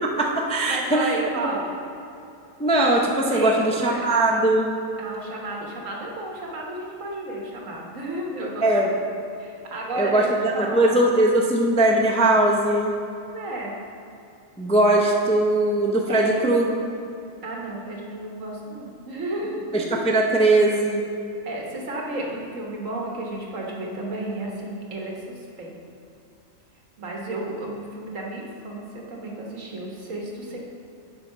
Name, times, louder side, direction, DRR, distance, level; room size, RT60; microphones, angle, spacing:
voice 1, 0.0-1.1 2.6-4.7 8.6-8.9 10.0-12.9 14.6-16.7 19.7-21.0, right 1 dB, 10° left, -1 dB, 0.4 m, -20 dB
voice 2, 0.7-1.7 3.3-4.5 5.0-8.9 9.4-10.3 10.5-11.0 13.3-13.8 16.1-16.4 17.4-19.7 21.4-25.8 27.0-30.6, right 2 dB, 75° right, -1 dB, 1.6 m, -32 dB
6.9 x 5.5 x 5.5 m, 2.7 s
omnidirectional pair, 1.3 m